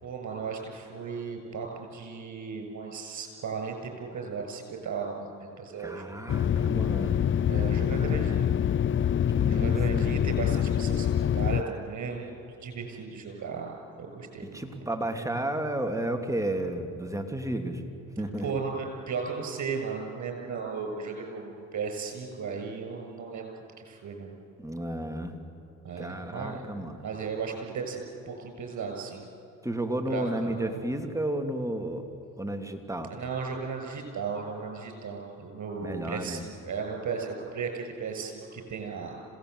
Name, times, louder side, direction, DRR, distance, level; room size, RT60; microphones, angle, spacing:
voice 1, 0.0-6.2 7.5-8.5 9.5-14.4 18.4-23.5 23.8-24.3 25.8-26.6 27.0-29.3 30.1-30.7 33.1-39.1, right 5 dB, 55° right, 3 dB, 6.8 m, -35 dB
voice 2, 5.8-7.4 9.3-10.0 14.5-17.8 18.2-18.5 24.6-25.3 26.0-27.0 29.6-32.1 32.4-33.1 35.8-36.4, right 1 dB, 10° right, 5 dB, 2.9 m, -32 dB
sound 1, 6.3-11.6, left 9 dB, 35° left, 0.5 m, -25 dB
26.5 x 18.0 x 8.1 m, 2.8 s
supercardioid pair, 65°, 34 cm